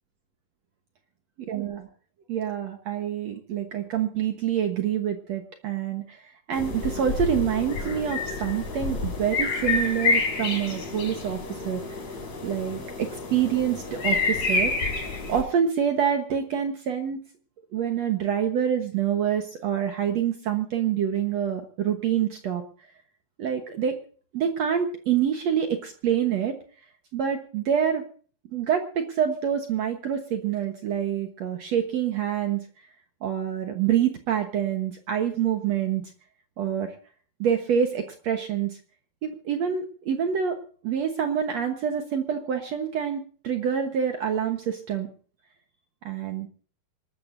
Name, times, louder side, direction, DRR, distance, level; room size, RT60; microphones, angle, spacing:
voice 1, 1.5-1.9 2.3-11.8 12.4-14.7 15.3-17.2 17.7-22.6 23.4-24.0 24.3-26.6 27.1-28.1 28.5-32.7 33.2-36.0 36.6-37.0 37.4-38.8 39.2-45.1 46.0-46.5, right 8 dB, 60° right, 5 dB, 1.9 m, -26 dB
sound 1, 6.5-15.4, left 3 dB, 45° left, 5.0 m, -28 dB
26.0 x 13.0 x 2.6 m, 0.43 s
omnidirectional pair, 4.3 m